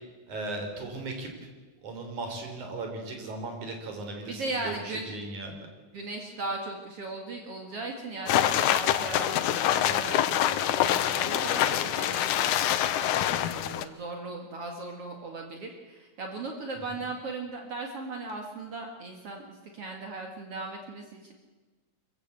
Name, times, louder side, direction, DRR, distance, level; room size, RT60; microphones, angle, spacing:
voice 1, 0.3-1.3 1.8-5.6, right 2 dB, 75° right, 4 dB, 5.1 m, -37 dB
voice 2, 4.3-5.1 5.9-21.3, right 3 dB, 55° right, 2 dB, 2.8 m, -38 dB
sound 1, 8.3-13.8, left 11 dB, 90° left, 2.4 m, -25 dB
24.0 x 16.0 x 8.3 m, 1.3 s
omnidirectional pair, 3.4 m